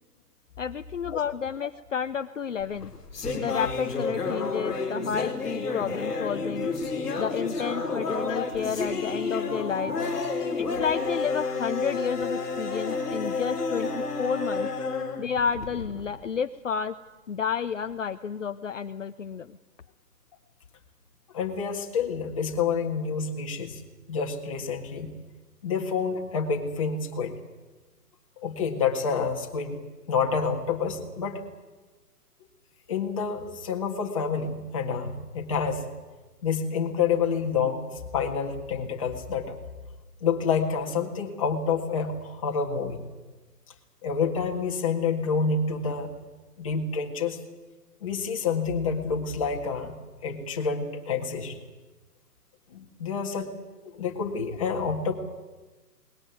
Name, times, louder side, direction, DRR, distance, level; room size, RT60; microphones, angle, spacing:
voice 1, 0.6-2.9 3.3-6.7 7.2-9.9 10.6-14.7 15.2-17.0 17.3-19.6, left 7 dB, 50° left, 8 dB, 0.8 m, -31 dB
sound 1, 2.6-16.0, left 4 dB, ahead, 1.1 m, -30 dB
voice 2, 21.3-23.8 24.1-25.1 25.6-27.3 28.4-29.8 30.1-31.4 32.9-35.9 36.4-39.6 40.2-43.1 44.0-46.1 46.6-47.4 48.0-49.9 50.2-51.6 52.7-53.5 53.8-55.1, left 5 dB, 20° left, 1 dB, 1.9 m, -28 dB
21.0 x 20.0 x 9.3 m, 1.2 s
hypercardioid pair, 175°, 48 cm